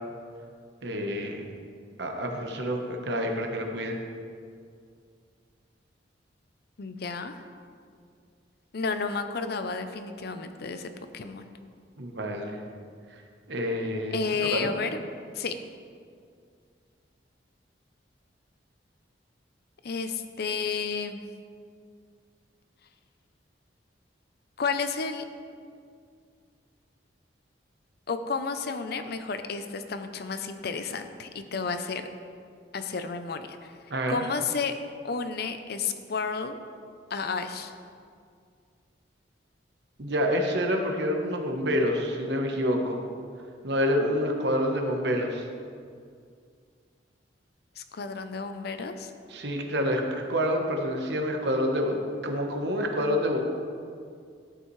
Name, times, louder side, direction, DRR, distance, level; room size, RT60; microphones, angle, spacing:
voice 1, 0.8-1.4 2.0-4.0 12.0-12.6 13.5-14.2 14.5-14.7 33.9-34.2 40.0-43.0 43.6-45.4 49.3-53.4, equal, 65° right, 2 dB, 1.1 m, -27 dB
voice 2, 6.8-7.4 8.7-11.5 14.1-15.0 15.3-15.6 19.8-21.3 24.6-25.2 28.1-32.0 32.7-33.8 34.1-34.7 35.0-36.6 37.1-37.7 47.8-49.1, left 5 dB, 60° left, 8 dB, 0.6 m, -31 dB
12.5 x 8.2 x 3.2 m, 2.2 s
head